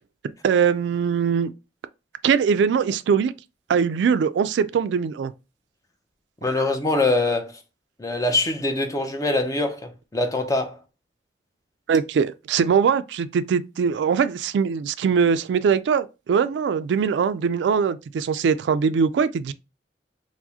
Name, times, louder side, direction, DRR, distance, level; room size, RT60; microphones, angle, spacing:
voice 1, 0.4-1.5 2.2-3.3 3.7-5.3 6.4-6.6 11.9-19.5, right 6 dB, 85° right, 0.3 m, -21 dB
voice 2, 6.4-7.5 8.0-10.8, left 2 dB, 20° left, 0.5 m, -23 dB
4.6 x 2.1 x 2.7 m
head